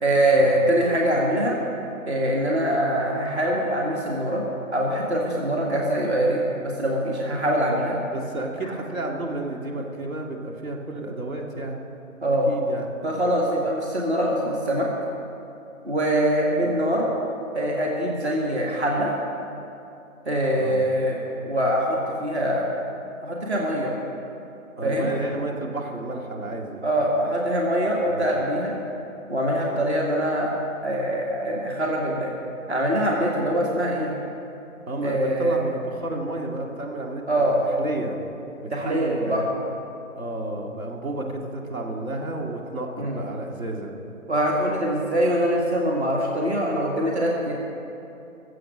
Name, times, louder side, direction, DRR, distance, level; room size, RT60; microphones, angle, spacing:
voice 1, 0.0-1.6 2.1-4.5 4.7-8.0 12.2-12.5 13.0-14.9 15.9-17.1 17.5-19.1 20.3-21.2 21.5-22.7 23.2-23.9 24.8-25.1 26.8-28.8 29.3-30.5 30.8-32.3 32.7-34.1 35.0-35.5 37.3-37.6 38.7-39.5 43.0-43.2 44.3-47.5, right 1 dB, 50° right, -1 dB, 1.9 m, -23 dB
voice 2, 8.1-11.8 12.5-12.9 16.6-16.8 20.5-20.8 24.8-26.8 28.1-28.2 34.9-38.2 38.6-39.5 40.1-44.0, right 2 dB, 75° right, 0 dB, 2.3 m, -31 dB
21.0 x 7.8 x 6.3 m, 2.7 s
hypercardioid pair, 180°, 42 cm